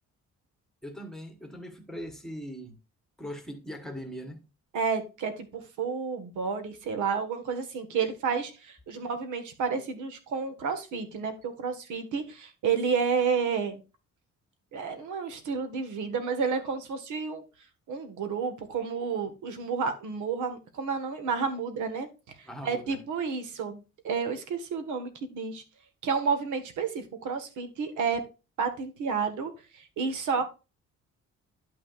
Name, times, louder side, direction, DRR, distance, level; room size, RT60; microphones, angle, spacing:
voice 1, 0.8-2.8 3.2-4.5 9.0-9.1 22.4-23.0, equal, ahead, 1.1 m, -40 dB
voice 2, 4.7-13.8 14.7-17.4 17.9-25.6 26.0-28.2 28.6-30.4, right 5 dB, 90° right, 1.6 m, -31 dB
11.0 x 6.0 x 2.4 m
cardioid pair, 175°, 29 cm